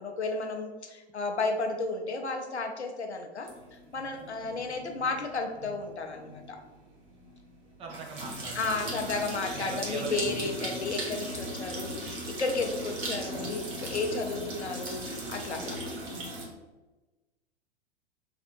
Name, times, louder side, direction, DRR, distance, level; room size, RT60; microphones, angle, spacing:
voice 1, 0.0-3.5 3.9-6.6 8.5-15.8, left 3 dB, 85° left, 4 dB, 0.6 m, -33 dB
sound 1, 3.5-16.5, right 1 dB, 35° right, 1.2 m, -38 dB
voice 2, 7.8-9.2 9.5-11.0, right 3 dB, 20° right, 2 dB, 0.4 m, -41 dB
3.4 x 2.5 x 4.4 m, 1.2 s
figure-of-eight pair, 95°, 33 cm